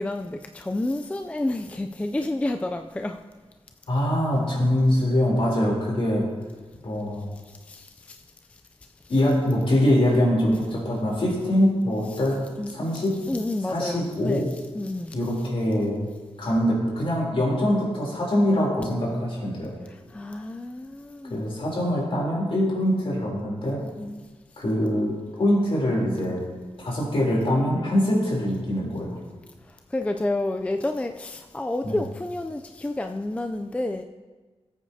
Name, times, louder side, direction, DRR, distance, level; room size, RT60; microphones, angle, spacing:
voice 1, 0.0-3.2 7.5-8.2 12.6-12.7 13.3-14.5 14.8-15.2 20.1-21.4 23.8-24.3 29.7-34.0, left 2 dB, 10° left, 0.3 m, -30 dB
voice 2, 3.9-6.3 6.8-7.3 9.1-13.2 13.7-14.5 15.1-16.1 16.4-19.7 21.3-23.8 24.6-26.4 26.8-29.2 31.8-32.0, left 1 dB, 60° left, 3.3 m, -23 dB
18.0 x 8.5 x 2.7 m
wide cardioid pair, 140°, 11 cm